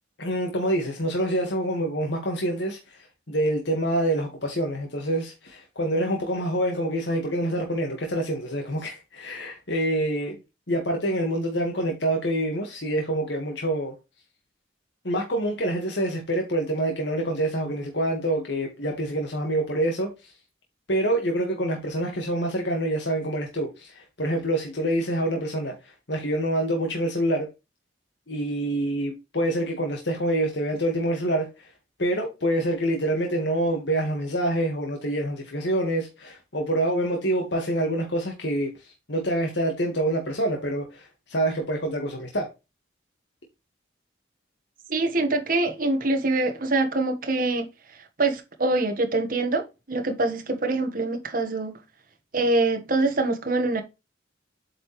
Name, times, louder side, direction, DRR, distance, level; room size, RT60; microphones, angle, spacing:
voice 1, 0.2-10.4 10.7-13.9 15.0-20.3 20.9-27.5 28.3-31.7 32.0-42.5, right 1 dB, 65° left, 1.8 m, -26 dB
voice 2, 44.9-47.7 48.2-51.8 52.3-53.8, right 2 dB, 50° right, 1.4 m, -24 dB
8.2 x 5.0 x 3.2 m
head